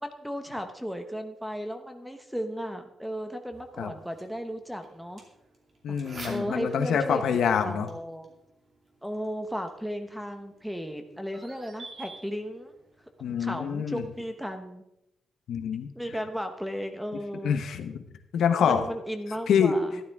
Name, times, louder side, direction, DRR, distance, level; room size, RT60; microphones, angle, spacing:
voice 1, 0.0-5.2 5.9-6.0 6.2-8.3 9.0-12.7 13.4-14.8 15.9-17.6 18.6-20.0, equal, ahead, 6 dB, 1.1 m, -35 dB
sound 1, 3.5-14.6, right 2 dB, 40° right, 2.6 m, -51 dB
voice 2, 5.8-7.9 13.2-14.0 15.5-15.9 17.4-18.0 18.3-18.8 19.5-19.7, left 7 dB, 75° left, 7 dB, 1.0 m, -26 dB
12.5 x 12.0 x 3.6 m, 0.85 s
wide cardioid pair, 135°, 0 cm